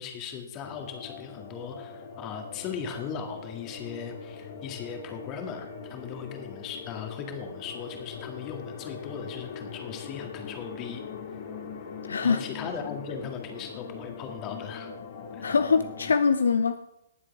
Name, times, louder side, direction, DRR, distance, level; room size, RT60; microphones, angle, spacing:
voice 1, 0.0-11.0 12.2-14.9 15.3-15.6, left 6 dB, 25° left, 2.0 m, -38 dB
sound 1, 0.6-16.1, left 6 dB, 45° left, 2.2 m, -41 dB
voice 2, 12.1-12.4 15.4-16.8, left 5 dB, 65° left, 0.6 m, -23 dB
19.0 x 7.5 x 3.6 m
figure-of-eight pair, 125°, 0 cm